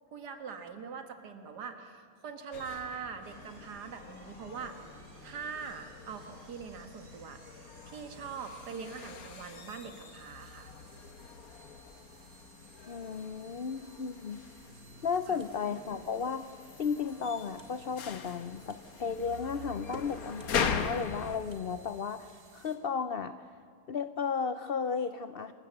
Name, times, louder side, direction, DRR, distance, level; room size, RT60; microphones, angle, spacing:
voice 1, 0.1-4.9 5.2-10.7 15.3-15.4, right 6 dB, 70° right, 6 dB, 2.0 m, -43 dB
sound 1, 2.5-21.4, left 6 dB, 60° left, 1.5 m, -41 dB
sound 2, 3.2-22.8, right 3 dB, 55° right, 2.6 m, -59 dB
voice 2, 12.9-14.4 15.0-16.5 16.8-23.5 23.9-25.5, left 6 dB, 75° left, 11 dB, 0.5 m, -34 dB
sound 3, 14.7-21.6, right 3 dB, 40° right, 2.0 m, -54 dB
27.0 x 13.5 x 8.1 m, 2.3 s
omnidirectional pair, 1.8 m